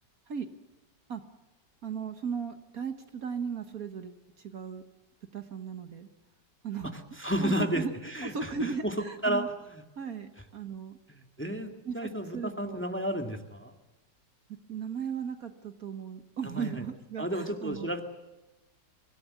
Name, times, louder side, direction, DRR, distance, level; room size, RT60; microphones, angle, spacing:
voice 1, 1.8-4.8 5.3-6.1 6.6-7.0 7.4-7.9 8.2-9.5 10.0-11.0 11.6-12.8 14.7-17.9, right 6 dB, 55° right, 8 dB, 1.6 m, -37 dB
voice 2, 6.8-9.8 11.1-11.7 11.9-13.7 16.4-16.8 17.2-18.0, equal, 5° left, 5 dB, 1.8 m, -32 dB
24.5 x 16.5 x 9.5 m, 1.1 s
omnidirectional pair, 1.9 m